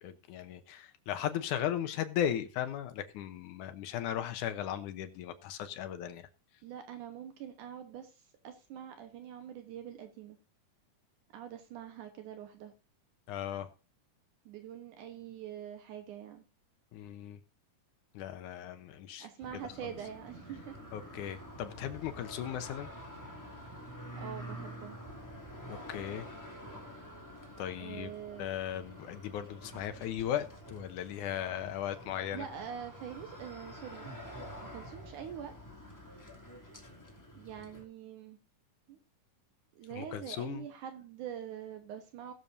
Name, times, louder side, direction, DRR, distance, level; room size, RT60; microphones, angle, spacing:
voice 1, 0.0-6.3 13.3-13.7 16.9-17.4 18.1-19.3 20.9-22.9 25.7-26.3 27.6-28.1 28.4-32.5 40.0-40.7, left 10 dB, 75° left, 2.3 m, -37 dB
voice 2, 6.6-10.4 11.3-12.7 14.5-16.4 19.2-20.8 21.2-21.4 24.2-25.0 27.8-28.5 32.3-34.1 34.6-35.5 37.4-38.4 38.9-39.0 39.7-42.3, right 9 dB, 75° right, 2.6 m, -44 dB
sound 1, 19.4-37.8, equal, 5° left, 2.1 m, -48 dB
20.5 x 7.0 x 2.7 m
omnidirectional pair, 3.7 m